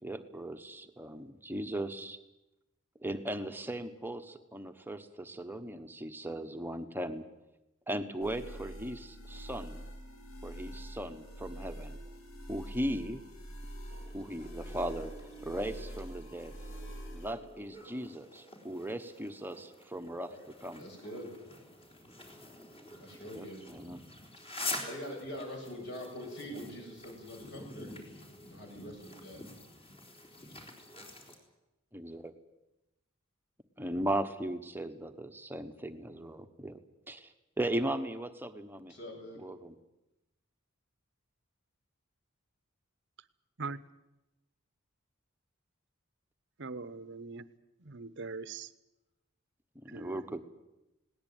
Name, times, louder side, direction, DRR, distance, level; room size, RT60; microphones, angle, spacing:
voice 1, 0.0-2.2 3.0-7.2 7.9-9.9 10.4-12.0 12.5-13.2 14.1-15.1 15.4-16.5 17.1-20.3 20.6-20.8 23.3-24.0 31.9-32.3 33.8-36.8 37.1-38.9 39.4-39.7 49.8-50.5, right 1 dB, 10° right, 7 dB, 1.3 m, -37 dB
sound 1, 8.2-17.3, right 1 dB, 80° left, 3.7 m, -45 dB
sound 2, 13.9-31.4, left 2 dB, 30° left, 4.1 m, -47 dB
voice 2, 20.7-21.3 23.0-23.6 24.7-27.9 28.4-29.4 30.3-30.6 38.9-39.4, equal, 55° left, 1 dB, 7.3 m, -44 dB
voice 3, 46.6-47.4 47.8-48.7 49.9-50.2, right 4 dB, 60° right, 15 dB, 1.0 m, -41 dB
19.5 x 18.5 x 9.3 m, 0.97 s
head